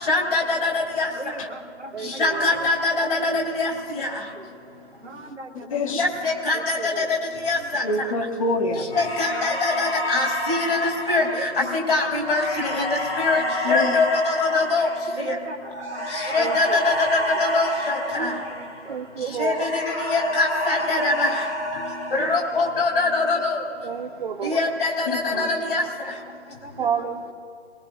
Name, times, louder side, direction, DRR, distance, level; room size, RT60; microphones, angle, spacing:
voice 1, 0.1-1.1 2.2-4.1 6.0-7.0 7.4-7.8 8.9-12.9 13.2-13.4 13.7-14.9 15.2-15.3 16.3-18.3 19.4-19.8 20.1-21.4 22.1-23.6 24.4-25.8, left 3 dB, 55° left, 0 dB, 4.0 m, -23 dB
voice 2, 1.2-2.4 3.2-3.3 4.4-4.5 5.0-6.0 7.5-7.7 9.5-9.8 11.3-11.7 13.1-13.6 15.1-16.7 18.1-19.4 22.2-22.6 26.0-26.9, right 3 dB, 80° right, 2 dB, 2.0 m, -39 dB
voice 3, 1.9-2.7 4.7-5.3 6.5-7.1 16.4-16.8 18.9-19.7 23.8-24.7 26.7-27.3, right 7 dB, 50° right, 3 dB, 0.8 m, -31 dB
voice 4, 5.7-6.1 7.8-8.9 13.6-14.0 25.1-25.5, left 2 dB, 30° left, 5 dB, 1.2 m, -26 dB
sound 1, 8.9-19.1 19.4-22.9, left 1 dB, 85° left, 3.6 m, -29 dB
22.5 x 20.0 x 2.6 m, 2.3 s
figure-of-eight pair, 140°, 34 cm